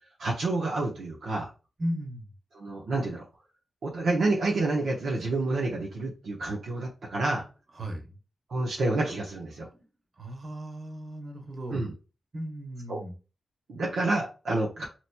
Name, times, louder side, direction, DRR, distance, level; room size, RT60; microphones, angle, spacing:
voice 1, 0.2-1.5 2.5-3.2 3.8-7.4 8.5-9.7 11.7-11.9 12.9-13.0 13.7-14.9, right 2 dB, 90° right, -3 dB, 0.8 m, -28 dB
voice 2, 1.8-2.3 7.7-8.0 10.2-11.8 12.3-13.1, equal, 45° right, 2 dB, 1.1 m, -35 dB
4.2 x 3.0 x 2.2 m, 0.33 s
wide cardioid pair, 120°, 0 cm